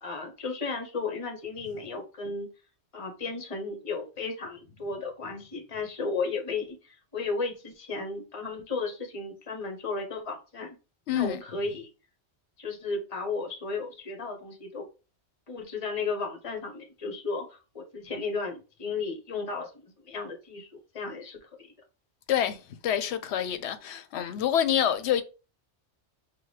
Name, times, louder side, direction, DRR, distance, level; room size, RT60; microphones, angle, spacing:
voice 1, 0.0-2.5 2.9-10.8 11.1-11.9 12.6-14.8 15.5-20.7 20.9-21.4, left 4 dB, 30° left, 1.0 m, -34 dB
voice 2, 11.1-11.4 22.3-25.2, left 10 dB, 75° left, 0.8 m, -27 dB
5.8 x 2.2 x 3.2 m
omnidirectional pair, 1.2 m